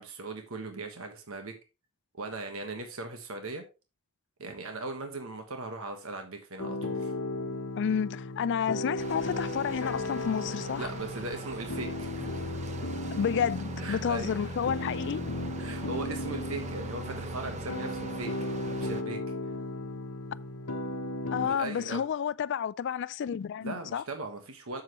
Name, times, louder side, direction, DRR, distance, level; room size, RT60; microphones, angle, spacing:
voice 1, 0.0-1.5 2.2-3.6 4.4-7.1 10.8-12.6 13.8-14.7 15.6-18.3 18.7-19.3 21.3-22.0 23.6-24.8, right 3 dB, 65° right, 1.3 m, -39 dB
sound 1, 6.6-21.5, left 1 dB, 90° left, 1.1 m, -35 dB
voice 2, 7.8-10.9 13.1-15.2 21.3-24.0, left 7 dB, 55° left, 0.3 m, -30 dB
sound 2, 9.0-19.0, right 3 dB, 30° right, 0.8 m, -43 dB
7.8 x 7.5 x 3.0 m
head